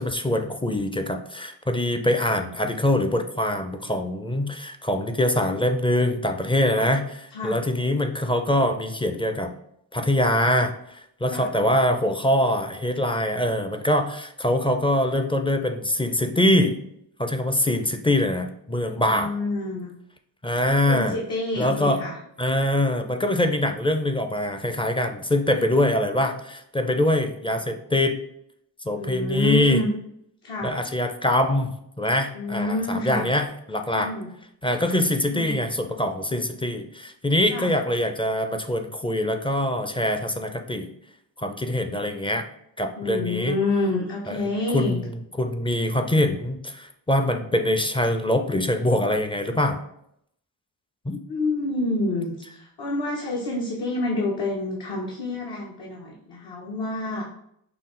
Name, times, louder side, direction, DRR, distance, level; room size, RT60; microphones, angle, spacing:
voice 1, 0.0-9.5 9.9-16.8 17.2-19.3 20.4-21.2 21.6-22.0 22.4-28.2 28.9-29.8 30.6-34.1 34.6-40.9 41.4-42.5 42.8-43.6 44.3-44.4 44.7-49.8 51.1-51.2, left 1 dB, 10° left, 6 dB, 0.4 m, -24 dB
voice 2, 7.3-7.7 11.3-11.5 19.0-20.0 20.9-22.2 29.0-29.9 30.4-30.8 32.3-33.3 33.9-34.3 35.3-35.6 37.5-37.7 43.0-45.0 51.3-57.2, left 2 dB, 60° left, -2 dB, 1.0 m, -28 dB
5.7 x 2.0 x 3.8 m, 0.73 s
cardioid pair, 60°, 45 cm